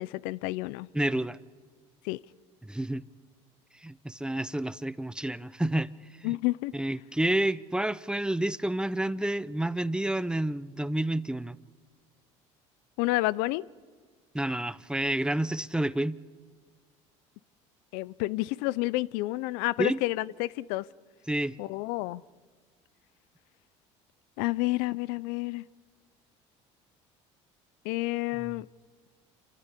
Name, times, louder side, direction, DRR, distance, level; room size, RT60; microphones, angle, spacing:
voice 1, 0.0-0.9 2.0-2.2 6.2-6.7 13.0-13.6 17.9-20.9 21.6-22.2 24.4-25.6 27.8-28.7, left 20 dB, 75° left, 21 dB, 0.5 m, -29 dB
voice 2, 0.9-1.4 2.6-3.0 3.8-5.9 6.2-6.4 6.7-11.6 14.3-16.2 19.8-20.0 21.3-21.6 28.4-28.5, right 1 dB, 5° right, 18 dB, 0.7 m, -29 dB
27.5 x 14.5 x 8.3 m, 1.5 s
supercardioid pair, 80°, 15 cm